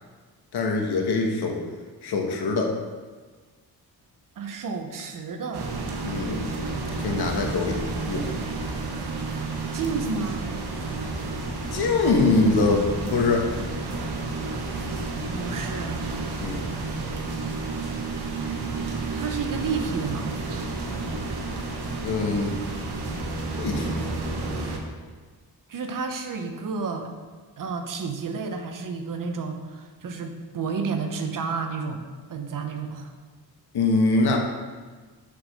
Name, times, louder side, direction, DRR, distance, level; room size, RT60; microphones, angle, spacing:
voice 1, 0.5-1.6 2.0-2.7 6.0-6.5 6.8-7.8 8.1-8.3 11.7-13.5 16.4-16.7 22.0-22.6 23.6-24.1 24.5-24.6 33.7-34.4, left 3 dB, 80° left, 1 dB, 1.3 m, -23 dB
voice 2, 4.4-5.7 9.7-10.5 15.3-16.1 19.1-20.4 25.7-27.1 27.6-33.1, right 5 dB, 55° right, 5 dB, 0.9 m, -31 dB
sound 1, 5.5-24.8, right 3 dB, 80° right, 1.3 m, -31 dB
6.8 x 5.1 x 6.5 m, 1.4 s
wide cardioid pair, 135°, 39 cm